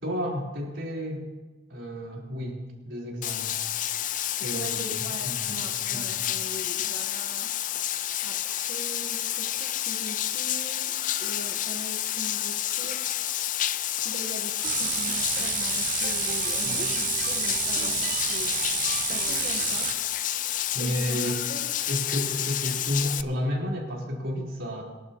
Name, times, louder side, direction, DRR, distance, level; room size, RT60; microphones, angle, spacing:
voice 1, 0.0-1.2 1.7-2.6 2.8-3.5 4.4-6.2 20.7-21.4 21.9-24.8, equal, 90° right, -3 dB, 4.2 m, -31 dB
Bathtub (filling or washing), 3.2-23.2, left 12 dB, 45° left, 0.4 m, -30 dB
voice 2, 4.5-7.5 8.2-10.9 11.2-13.1 14.0-18.5 19.1-19.9 20.8-21.6, right 1 dB, 60° right, -2 dB, 1.3 m, -41 dB
sound 1, 14.6-19.9, right 10 dB, 45° right, 0.6 m, -29 dB
23.5 x 12.0 x 3.0 m, 1.3 s
head